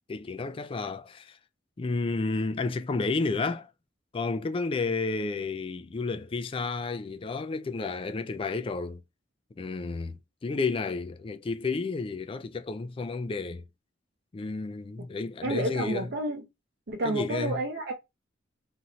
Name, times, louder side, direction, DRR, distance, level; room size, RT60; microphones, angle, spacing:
voice 1, 0.1-1.4 1.8-3.7 4.1-9.0 9.6-13.6 14.3-16.1 17.0-17.6, left 3 dB, 30° left, 0.3 m, -31 dB
voice 2, 15.4-16.4 16.9-17.9, right 1 dB, 60° right, 0.7 m, -30 dB
3.1 x 2.7 x 2.5 m
head